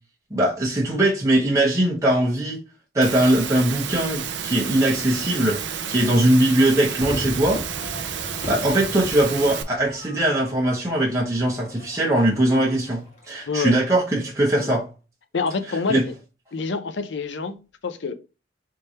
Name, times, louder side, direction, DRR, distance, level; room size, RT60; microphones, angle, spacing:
voice 1, 0.3-2.6 2.9-5.6 5.9-7.6 8.5-14.8 15.9-16.0, right 1 dB, 15° right, 1.0 m, -21 dB
Engine / Mechanisms, 3.0-9.6, right 7 dB, 85° right, 0.5 m, -31 dB
Crowd / Fireworks, 7.0-13.5, left 1 dB, 40° left, 1.6 m, -38 dB
voice 2, 13.5-13.8 14.6-14.7 15.3-16.1 16.5-18.1, left 4 dB, 90° left, 0.6 m, -27 dB
3.7 x 3.3 x 4.1 m
head